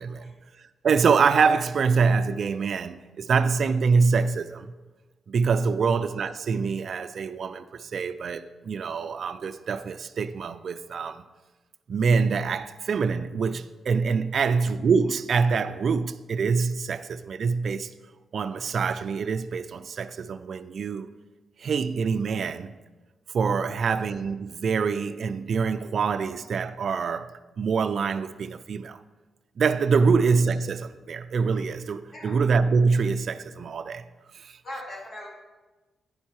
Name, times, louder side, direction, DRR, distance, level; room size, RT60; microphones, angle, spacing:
voice 1, 0.0-4.7 5.3-11.2 11.9-17.9 18.3-21.1 21.6-22.8 23.3-27.3 27.6-29.0 29.6-34.1 34.3-34.6, right 5 dB, 65° right, 0.4 m, -25 dB
voice 2, 34.6-35.3, left 1 dB, 45° left, 3.3 m, -39 dB
9.5 x 7.3 x 4.7 m
cardioid pair, 85°, 0 cm